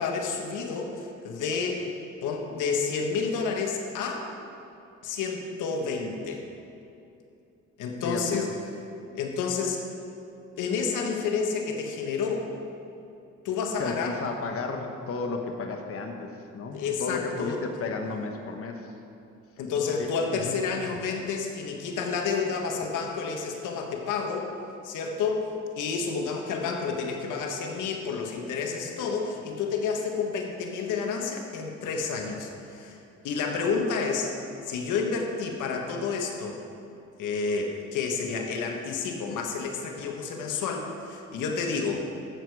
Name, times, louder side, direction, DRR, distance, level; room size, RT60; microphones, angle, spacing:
voice 1, 0.0-1.8 2.2-4.3 5.0-6.4 7.8-8.5 9.1-9.8 10.6-12.5 13.4-14.2 16.7-17.6 19.6-24.5 24.8-25.5 25.8-33.0 33.2-34.3 34.6-36.6 37.2-42.1, left 5 dB, 85° left, 2 dB, 1.4 m, -30 dB
voice 2, 8.0-8.5 13.8-18.9 20.0-20.6, left 4 dB, 50° left, 3 dB, 1.1 m, -33 dB
12.5 x 8.4 x 4.8 m, 2.7 s
cardioid pair, 90°, 30 cm